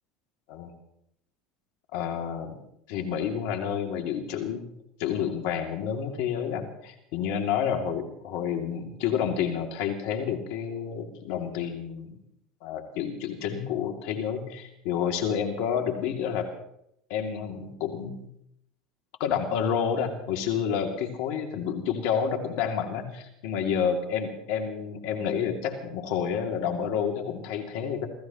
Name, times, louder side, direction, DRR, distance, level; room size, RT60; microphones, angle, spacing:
voice 1, 1.9-2.6 2.9-4.6 5.0-12.2 12.6-16.5 17.1-18.3 19.2-28.1, left 7 dB, 70° left, 4 dB, 2.6 m, -29 dB
27.0 x 16.0 x 3.1 m, 0.75 s
hypercardioid pair, 85°, 2 cm